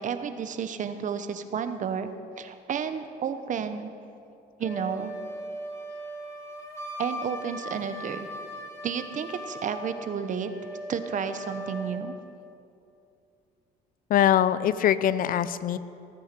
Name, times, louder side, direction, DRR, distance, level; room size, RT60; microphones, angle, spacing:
voice 1, 0.0-2.1 2.4-3.9 4.6-5.1 7.0-8.3 8.8-10.5 10.9-12.2, right 7 dB, 50° right, 9 dB, 1.1 m, -31 dB
Wind instrument woodwind instrument, 4.6-12.0, equal, 15° left, 2.7 m, -39 dB
voice 2, 14.1-15.8, left 10 dB, 55° left, 15 dB, 0.6 m, -22 dB
18.0 x 9.2 x 6.9 m, 2.6 s
cardioid pair, 110°, 17 cm